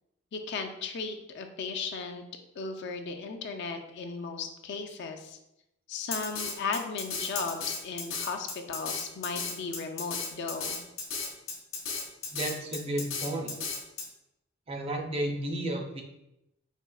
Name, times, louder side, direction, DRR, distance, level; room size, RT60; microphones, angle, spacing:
voice 1, 0.3-2.2 2.6-5.4 5.9-10.8, left 4 dB, 60° left, 5 dB, 0.4 m, -36 dB
Drum kit, 6.1-14.0, left 5 dB, 75° left, 0.8 m, -34 dB
voice 2, 12.3-13.5 14.7-16.0, right 1 dB, 30° right, 2 dB, 0.4 m, -32 dB
4.4 x 2.7 x 2.3 m, 0.86 s
head